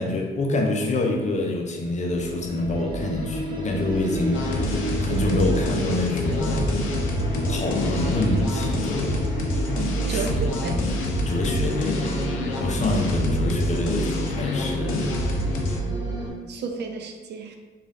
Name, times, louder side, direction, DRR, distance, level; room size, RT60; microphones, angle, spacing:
voice 1, 0.0-6.8 7.5-9.2 10.0-10.6 11.3-12.2 12.6-15.2, left 2 dB, 35° left, 1 dB, 0.5 m, -26 dB
sound 1, 2.0-16.3, right 2 dB, 20° right, 0.9 m, -30 dB
sound 2, 4.3-15.8, left 2 dB, 85° left, 0.5 m, -28 dB
voice 2, 10.1-11.1 16.5-17.6, right 4 dB, 60° right, 4 dB, 0.4 m, -32 dB
3.2 x 2.3 x 2.6 m, 1.3 s
cardioid pair, 90°, 20 cm